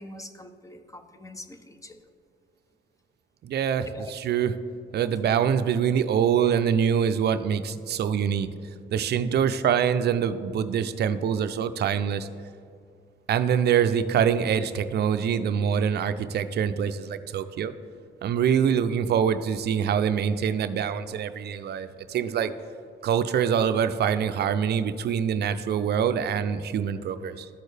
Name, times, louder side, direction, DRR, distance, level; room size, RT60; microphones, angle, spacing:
voice 1, 0.0-2.1 3.9-4.1 5.1-5.2, left 2 dB, 15° left, 8 dB, 0.6 m, -44 dB
voice 2, 3.4-4.6 4.9-8.5 8.9-12.3 13.3-17.7 18.2-22.5 23.0-27.5, right 8 dB, 55° right, 11 dB, 0.5 m, -25 dB
13.0 x 4.5 x 3.3 m, 2.4 s
cardioid pair, 90°, 20 cm